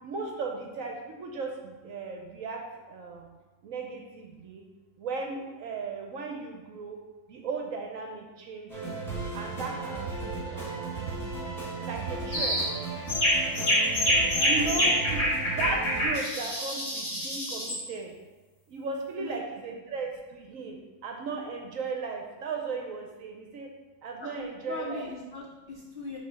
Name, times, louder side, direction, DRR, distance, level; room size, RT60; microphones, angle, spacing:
voice 1, 0.0-3.3 3.6-4.6 5.0-7.0 7.3-8.9 9.3-11.1 11.8-12.6 14.5-18.2 18.7-23.7 24.0-25.1, right 4 dB, 65° right, 2 dB, 0.9 m, -36 dB
sound 1, 8.7-16.1, right 3 dB, ahead, 1.6 m, -35 dB
sound 2, 12.3-12.7 13.1-17.8, equal, 40° left, 1.8 m, -26 dB
voice 2, 24.2-26.2, left 3 dB, 85° left, -1 dB, 0.5 m, -39 dB
5.8 x 3.4 x 5.0 m, 1.2 s
omnidirectional pair, 1.8 m